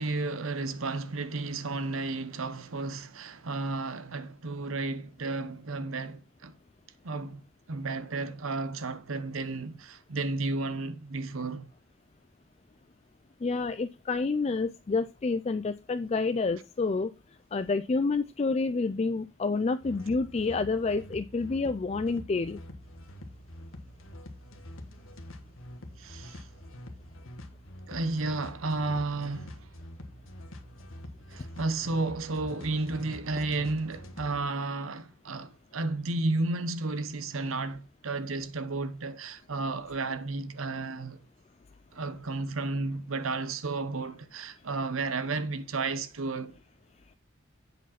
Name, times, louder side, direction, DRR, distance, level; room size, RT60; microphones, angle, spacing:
voice 1, 0.0-6.6 7.0-7.4 7.7-11.7 26.0-26.5 27.9-29.7 31.3-41.2 41.9-46.6, right 3 dB, 90° right, 0.9 m, -32 dB
voice 2, 13.4-17.1 17.5-22.6, left 3 dB, 30° left, 0.3 m, -28 dB
sound 1, 19.8-34.4, left 1 dB, 85° left, 1.3 m, -46 dB
8.0 x 4.9 x 5.7 m
head